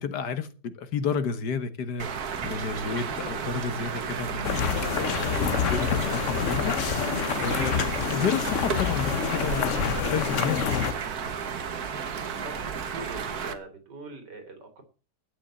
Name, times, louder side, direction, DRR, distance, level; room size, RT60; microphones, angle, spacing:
voice 1, 0.0-2.1 2.4-4.7 5.0-6.7 7.4-7.9 8.1-9.8 10.1-10.9, left 6 dB, 75° left, 1.8 m, -31 dB
sound 1, 2.0-13.5, right 6 dB, 65° right, 1.7 m, -33 dB
sound 2, 4.4-10.9, left 8 dB, 55° left, 1.1 m, -27 dB
voice 2, 12.4-14.8, right 2 dB, 80° right, 3.3 m, -43 dB
11.5 x 8.4 x 7.2 m
omnidirectional pair, 1.8 m